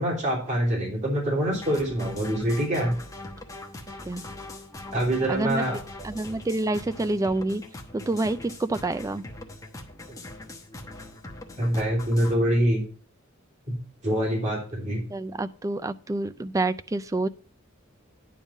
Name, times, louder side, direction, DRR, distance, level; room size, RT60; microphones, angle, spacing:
voice 1, 0.0-2.9 4.9-5.8 11.6-12.8 14.0-15.0, right 1 dB, 35° right, -3 dB, 3.2 m, -25 dB
sound 1, 1.5-12.4, left 2 dB, 15° left, 1.0 m, -42 dB
voice 2, 5.3-5.6 6.0-7.6 7.9-9.2 15.1-17.3, right 2 dB, 15° right, 12 dB, 0.3 m, -27 dB
10.0 x 3.6 x 7.2 m, 0.41 s
head